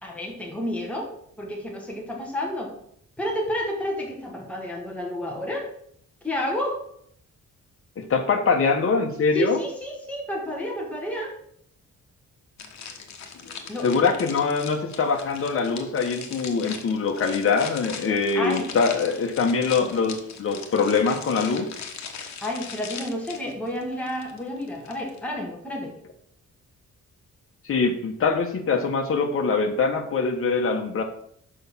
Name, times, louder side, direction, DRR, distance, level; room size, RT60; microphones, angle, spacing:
voice 1, 0.0-2.8 3.2-5.7 6.2-6.8 9.3-11.4 13.7-14.0 18.3-18.7 22.4-25.9, equal, 5° left, -2 dB, 1.6 m, -30 dB
voice 2, 8.0-9.6 13.8-21.7 27.6-31.0, left 4 dB, 50° left, 4 dB, 1.3 m, -23 dB
sound 1, 12.6-25.2, left 6 dB, 65° left, 1.2 m, -40 dB
6.5 x 5.6 x 6.2 m, 0.66 s
wide cardioid pair, 170°, 29 cm